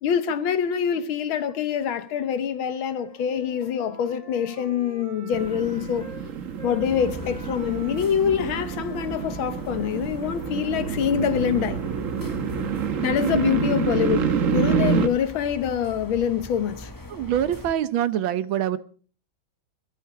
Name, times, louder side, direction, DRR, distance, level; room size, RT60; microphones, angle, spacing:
voice 1, 0.0-6.1 6.6-11.8 13.0-16.9, left 8 dB, 80° left, 1.8 m, -25 dB
Wind instrument woodwind instrument, 2.7-6.2 6.6-10.8, right 2 dB, 15° right, 2.7 m, -45 dB
sound 1, 5.3-15.1, right 6 dB, 50° right, 1.2 m, -27 dB
sound 2, 6.8-17.7, left 1 dB, 20° left, 0.5 m, -41 dB
voice 2, 17.1-18.8, right 10 dB, 75° right, 1.7 m, -24 dB
22.5 x 12.0 x 4.7 m
omnidirectional pair, 2.2 m